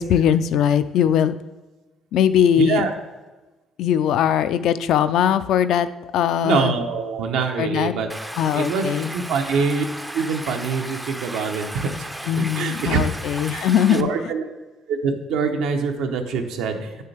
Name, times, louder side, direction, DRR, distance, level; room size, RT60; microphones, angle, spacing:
voice 1, 0.0-1.4 2.1-2.9 3.8-5.9 6.1-6.8 7.6-7.9 8.4-9.1 12.3-14.3, left 9 dB, 75° left, 12 dB, 0.4 m, -20 dB
voice 2, 2.6-2.9 6.4-8.1 8.5-8.8 9.1-9.8 10.1-12.1 12.4-13.0 13.5-13.6 13.9-14.4 14.9-16.9, right 5 dB, 90° right, 4 dB, 0.9 m, -24 dB
Stream, 8.1-14.0, right 1 dB, 5° right, 0.4 m, -34 dB
9.0 x 6.6 x 3.4 m, 1.2 s
cardioid pair, 115°, 0 cm